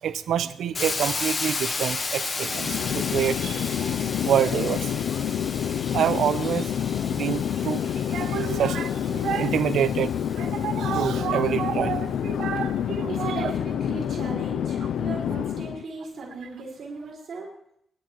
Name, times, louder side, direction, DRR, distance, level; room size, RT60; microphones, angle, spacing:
voice 1, 0.0-5.0 5.9-6.7 7.1-13.5, right 9 dB, 85° right, 0.8 m, -27 dB
Hiss, 0.8-10.6, left 3 dB, 35° left, 1.2 m, -34 dB
Chatter / Fixed-wing aircraft airplane, 2.4-15.8, left 9 dB, 85° left, 0.4 m, -28 dB
voice 2, 13.0-17.5, right 3 dB, 55° right, 4.8 m, -36 dB
25.0 x 12.0 x 3.1 m
wide cardioid pair, 155°, 0 cm